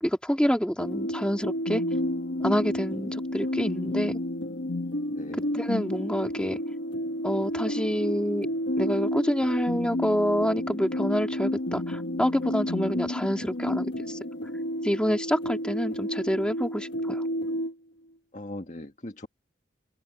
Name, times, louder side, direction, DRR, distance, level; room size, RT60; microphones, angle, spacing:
voice 1, 0.0-1.8 2.4-4.2 5.5-6.6 7.2-8.5 8.8-14.2 14.8-17.2, equal, 5° left, 2.7 m, -27 dB
sound 1, 0.8-17.7, left 1 dB, 75° left, 1.2 m, -31 dB
voice 2, 5.1-5.4 18.3-19.3, left 1 dB, 40° left, 1.7 m, -39 dB
open air
head